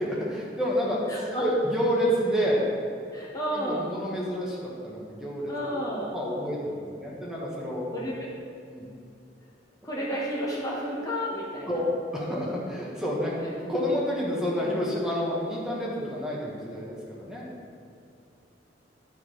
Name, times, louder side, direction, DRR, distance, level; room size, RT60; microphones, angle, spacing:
voice 1, 0.0-2.7 3.5-5.8 6.1-7.9 8.6-8.9 11.7-11.8 12.1-17.4, equal, 5° right, -5 dB, 1.3 m, -29 dB
voice 2, 1.1-1.4 3.1-3.9 5.5-6.1 7.9-8.3 9.8-11.8 13.4-13.5, equal, 20° left, -5 dB, 1.2 m, -31 dB
11.0 x 4.7 x 4.9 m, 2.6 s
head